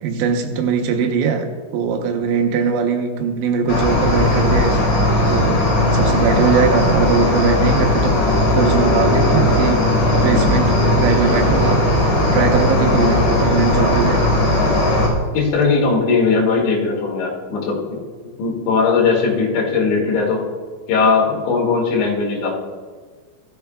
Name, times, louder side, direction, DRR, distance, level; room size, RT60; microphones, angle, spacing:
voice 1, 0.0-4.8 5.3-5.6 5.9-8.1 8.5-9.8 10.2-11.8 12.2-14.2, right 6 dB, 85° right, 3 dB, 3.5 m, -20 dB
Cricket, 3.7-15.1, left 1 dB, 50° left, 5.9 m, -17 dB
voice 2, 15.3-18.0 18.4-20.4 20.9-22.5, left 4 dB, 75° left, -3 dB, 4.5 m, -18 dB
16.5 x 13.5 x 2.4 m, 1.5 s
omnidirectional pair, 5.3 m